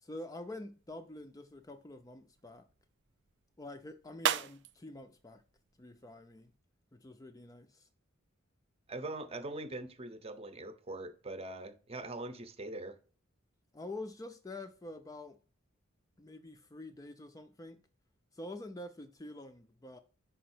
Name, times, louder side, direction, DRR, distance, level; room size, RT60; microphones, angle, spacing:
voice 1, 0.0-2.6 3.6-5.4 5.8-6.5 6.9-7.9 13.7-15.4 16.2-17.8 18.3-20.0, left 2 dB, 15° left, 0.4 m, -47 dB
sound 1, 0.6-6.6, right 9 dB, 60° right, 0.4 m, -41 dB
voice 2, 8.9-13.0, right 2 dB, 30° right, 0.7 m, -42 dB
5.5 x 5.1 x 4.3 m
head